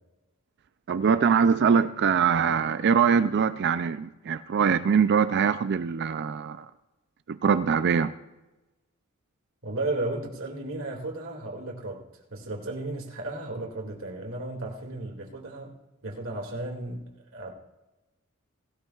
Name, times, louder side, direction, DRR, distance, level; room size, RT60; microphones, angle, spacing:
voice 1, 0.9-6.7 7.3-8.1, right 6 dB, 55° right, 0.4 m, -23 dB
voice 2, 9.6-12.0 12.3-15.8 16.0-17.5, right 2 dB, 75° right, 2.3 m, -34 dB
18.5 x 17.0 x 2.4 m
head